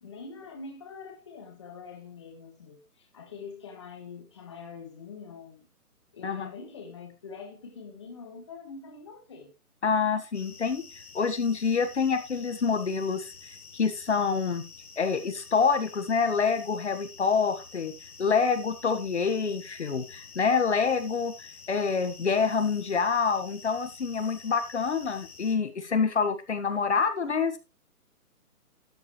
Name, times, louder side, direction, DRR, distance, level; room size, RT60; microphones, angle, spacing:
voice 1, 0.0-5.7 6.1-9.5, left 5 dB, 20° left, 1.4 m, -44 dB
voice 2, 9.8-10.8 11.1-14.6 15.0-17.9 18.2-27.6, left 5 dB, 50° left, 1.4 m, -27 dB
sound 1, 10.3-25.6, left 5 dB, 75° left, 2.7 m, -49 dB
12.5 x 8.3 x 3.1 m
hypercardioid pair, 175°, 45 cm